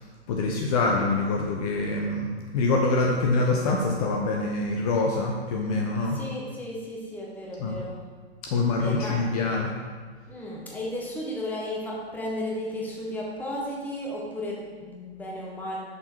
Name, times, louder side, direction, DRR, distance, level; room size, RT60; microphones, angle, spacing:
voice 1, 0.3-2.3 2.5-6.2 7.6-7.8 8.4-9.7, left 3 dB, 35° left, 0 dB, 0.8 m, -25 dB
voice 2, 6.1-8.1 8.8-9.3 10.3-15.8, left 1 dB, 5° left, -4 dB, 1.2 m, -34 dB
6.4 x 6.2 x 4.5 m, 1.5 s
figure-of-eight pair, 120°, 33 cm